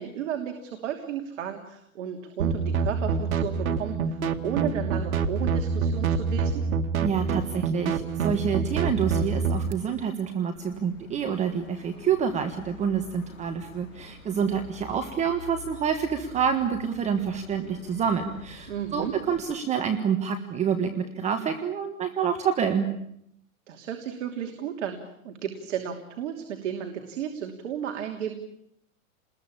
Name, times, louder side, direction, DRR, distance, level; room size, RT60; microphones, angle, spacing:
voice 1, 0.0-6.6 18.7-19.1 23.7-25.0 25.2-28.4, right 9 dB, 60° right, 4 dB, 3.1 m, -33 dB
sound 1, 2.4-9.7, right 5 dB, 85° right, 2.1 m, -26 dB
voice 2, 7.0-22.9, right 7 dB, 15° right, 7 dB, 1.5 m, -27 dB
sound 2, 10.6-19.4, left 5 dB, 65° left, 5.4 m, -47 dB
29.0 x 21.0 x 8.7 m, 0.75 s
hypercardioid pair, 150°, 41 cm